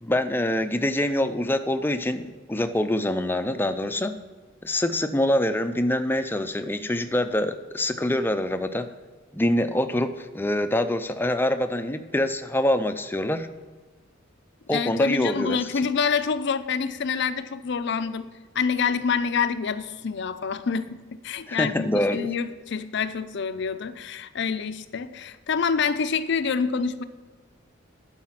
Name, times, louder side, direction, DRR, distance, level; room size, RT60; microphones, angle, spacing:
voice 1, 0.0-4.1 4.6-8.9 9.3-13.5 14.7-15.6 21.5-22.2, left 1 dB, 10° left, 9 dB, 0.5 m, -25 dB
voice 2, 14.7-27.0, left 5 dB, 60° left, 12 dB, 0.5 m, -27 dB
12.0 x 4.9 x 5.8 m, 1.4 s
head